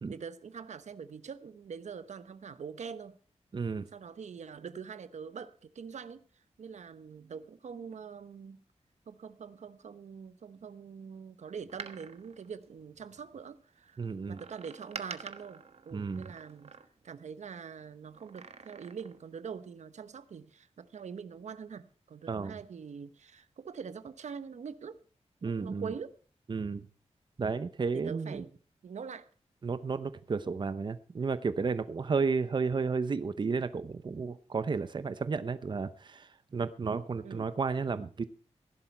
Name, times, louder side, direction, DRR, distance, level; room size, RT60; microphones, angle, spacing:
voice 1, 0.1-3.2 3.9-6.2 6.6-8.6 9.1-14.0 14.3-16.7 17.0-25.0 25.4-26.2 27.9-28.5 28.8-29.3 37.2-37.5, right 6 dB, 85° right, 1.0 m, -44 dB
voice 2, 3.5-3.9 14.0-14.4 15.9-16.3 22.3-22.6 25.4-25.9 26.5-26.9 27.4-28.4 29.6-38.2, right 5 dB, 40° right, 0.7 m, -32 dB
Door, 11.6-13.4 14.3-17.2 18.1-19.3 19.6-19.7, right 5 dB, 65° right, 1.3 m, -48 dB
16.5 x 11.5 x 4.5 m
wide cardioid pair, 140°, 12 cm